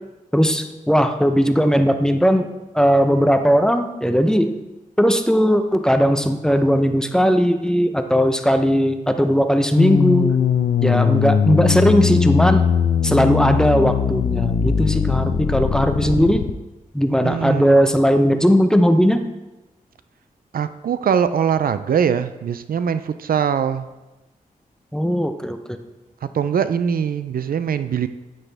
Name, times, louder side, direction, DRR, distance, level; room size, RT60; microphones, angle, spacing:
voice 1, 0.3-2.5 2.7-4.5 5.0-10.3 10.8-12.7 13.0-16.4 16.9-19.2 24.9-25.8, equal, 5° left, 7 dB, 0.7 m, -18 dB
sound 1, 9.8-16.5, left 7 dB, 75° left, 0.6 m, -20 dB
voice 2, 17.2-17.8 20.5-23.9 26.2-28.1, right 7 dB, 80° right, 12 dB, 0.5 m, -22 dB
9.8 x 9.0 x 3.4 m, 1.0 s
wide cardioid pair, 90°, 15 cm